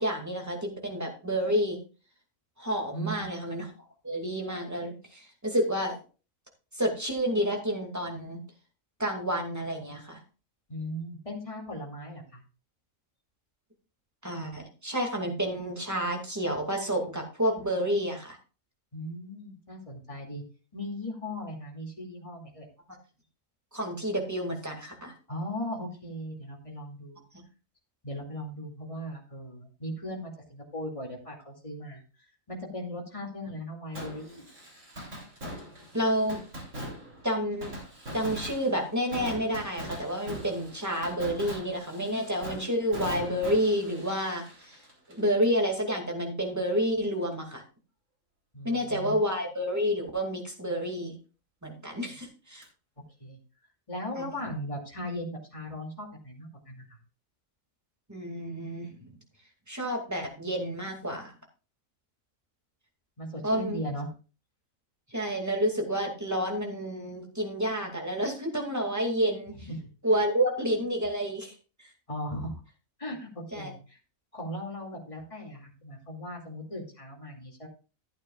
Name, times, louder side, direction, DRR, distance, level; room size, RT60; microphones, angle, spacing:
voice 1, 0.0-1.8 2.6-3.7 4.0-6.0 6.7-8.4 9.0-10.2 14.2-18.4 23.7-25.1 35.9-36.4 37.2-37.7 38.1-44.8 45.1-47.6 48.6-51.1 51.6-52.6 54.2-54.3 58.1-59.1 59.7-61.3 63.4-63.8 65.1-69.7 70.0-71.9 73.5-73.7, equal, 10° right, 1 dB, 2.3 m, -29 dB
voice 2, 2.9-3.2 10.7-12.4 18.9-20.4 20.7-22.7 25.3-27.2 28.0-32.0 32.5-34.5 48.5-49.2 52.1-52.2 53.2-53.4 53.9-57.0 63.2-64.1 69.7-69.8 72.1-72.6 73.0-74.0 74.3-77.7, equal, 25° left, -1 dB, 2.5 m, -38 dB
Fireworks, 34.0-45.6 45.9-46.0 52.6-52.7, equal, 65° right, 4.0 m, -41 dB
14.5 x 8.8 x 2.4 m, 0.35 s
omnidirectional pair, 1.4 m